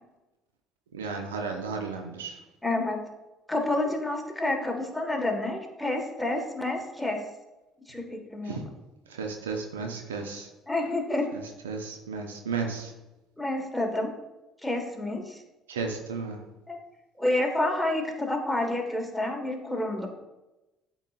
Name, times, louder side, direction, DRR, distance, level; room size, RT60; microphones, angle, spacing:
voice 1, 0.9-2.4 8.5-8.6 9.1-10.5 11.3-12.9 15.7-16.4, right 4 dB, 75° right, 4 dB, 0.7 m, -34 dB
voice 2, 2.6-3.0 3.5-7.2 7.9-8.6 10.7-11.3 13.4-14.1 14.6-15.4 16.7-16.8 17.2-20.1, left 2 dB, 5° left, 2 dB, 1.5 m, -29 dB
12.0 x 4.0 x 2.4 m, 1.0 s
figure-of-eight pair, 50°, 0 cm